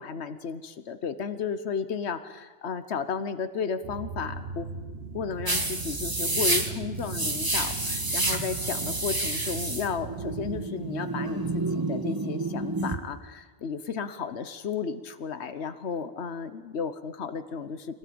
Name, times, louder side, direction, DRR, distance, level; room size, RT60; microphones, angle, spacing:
voice 1, 0.0-4.7 5.1-18.0, left 6 dB, 85° left, 11 dB, 1.3 m, -33 dB
sound 1, 3.8-10.7, right 5 dB, 70° right, 1.4 m, -38 dB
sound 2, 5.5-13.0, right 2 dB, 20° right, 1.6 m, -29 dB
25.5 x 18.5 x 8.7 m, 1.4 s
omnidirectional pair, 1.1 m